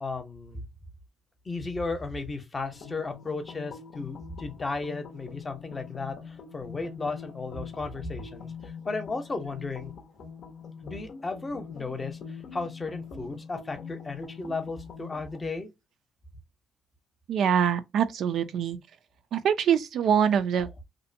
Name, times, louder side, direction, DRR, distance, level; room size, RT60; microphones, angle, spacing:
voice 1, 0.0-0.6 1.4-8.5 8.9-9.9 10.8-15.7, left 3 dB, 25° left, 0.7 m, -34 dB
sound 1, 2.7-15.5, left 6 dB, 65° left, 0.5 m, -43 dB
voice 2, 17.3-18.8 19.3-20.8, right 8 dB, 70° right, 0.3 m, -24 dB
2.6 x 2.1 x 2.5 m
cardioid pair, 90°, 0 cm